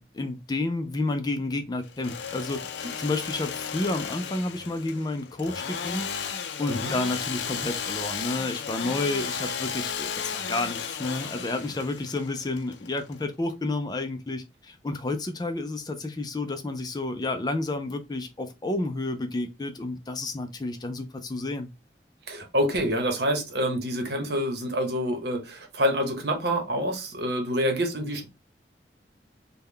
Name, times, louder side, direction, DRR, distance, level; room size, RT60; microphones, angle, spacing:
voice 1, 0.0-2.7 3.0-6.1 6.3-21.7, left 2 dB, 25° left, 0.4 m, -30 dB
Engine / Sawing, 1.8-13.5, left 7 dB, 85° left, 0.4 m, -34 dB
voice 2, 22.3-28.3, equal, 70° right, 0.9 m, -27 dB
3.6 x 2.2 x 3.2 m
head